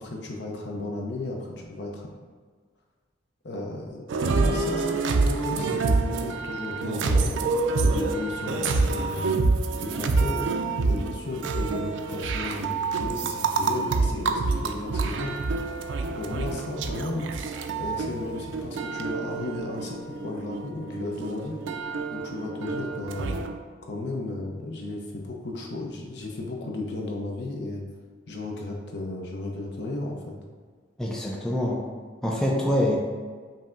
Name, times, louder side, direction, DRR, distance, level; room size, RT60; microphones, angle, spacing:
voice 1, 0.0-2.1 3.4-7.4 7.8-9.3 9.8-10.5 10.8-15.4 16.2-17.3 17.8-21.6 22.1-23.4 23.9-27.8 28.3-30.3, left 2 dB, 60° left, 0 dB, 0.6 m, -34 dB
sound 1, 4.1-23.5, right 3 dB, 80° right, 0.3 m, -27 dB
voice 2, 31.0-31.8 32.2-33.0, left 1 dB, 5° left, -3 dB, 0.4 m, -25 dB
5.4 x 2.7 x 2.5 m, 1.5 s
head